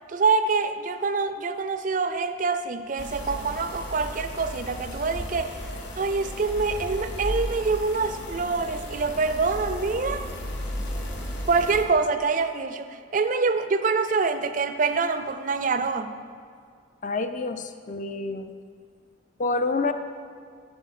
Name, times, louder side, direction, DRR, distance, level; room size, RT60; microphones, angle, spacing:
voice 1, 0.1-5.6 6.0-10.3 11.5-16.2, right 4 dB, 40° right, 10 dB, 0.4 m, -25 dB
sound 1, 3.0-11.8, left 1 dB, 60° left, 1.4 m, -35 dB
voice 2, 17.0-18.5 19.4-19.9, left 3 dB, 40° left, 9 dB, 0.4 m, -28 dB
11.5 x 4.9 x 6.5 m, 2.2 s
head